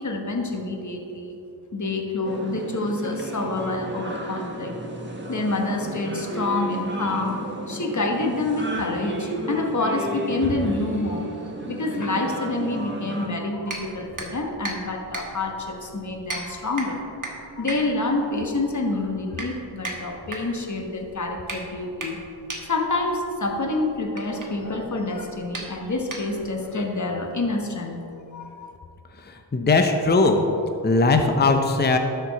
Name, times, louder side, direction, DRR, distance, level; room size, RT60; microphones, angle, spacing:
voice 1, 0.0-1.4 1.7-4.7 5.3-7.4 7.7-11.3 11.7-22.2 22.7-28.7, left 2 dB, 40° left, 2 dB, 1.2 m, -27 dB
sound 1, 2.2-13.3, right 1 dB, 25° right, 1.3 m, -33 dB
sound 2, 13.6-26.7, right 2 dB, 45° right, 1.3 m, -38 dB
voice 2, 29.2-30.4 30.8-32.0, left 3 dB, 25° left, 5 dB, 0.6 m, -19 dB
12.0 x 4.5 x 4.0 m, 2.7 s
cardioid pair, 50°, 45 cm